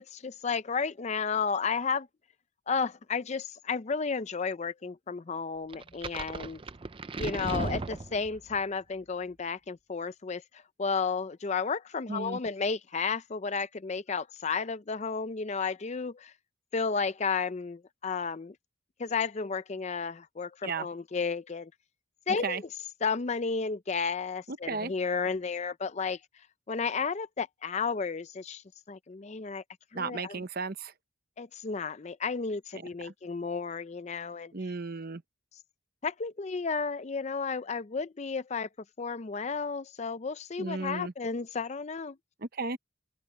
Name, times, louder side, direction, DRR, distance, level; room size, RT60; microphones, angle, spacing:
voice 1, 0.0-2.1 2.7-6.6 7.2-10.4 10.8-16.3 16.7-18.5 19.0-21.7 22.3-22.6 23.0-26.2 26.7-28.6 28.9-29.6 29.9-30.4 31.4-34.5 36.0-38.7 39.0-42.2, left 5 dB, 30° left, 0.4 m, -32 dB
sound 1, 5.7-8.6, right 3 dB, 25° right, 0.4 m, -36 dB
voice 2, 12.1-12.4 20.6-20.9 22.4-22.6 24.5-24.9 29.9-30.9 32.7-33.1 34.5-35.2 40.6-41.1 42.4-42.8, right 4 dB, 45° right, 0.9 m, -35 dB
open air
head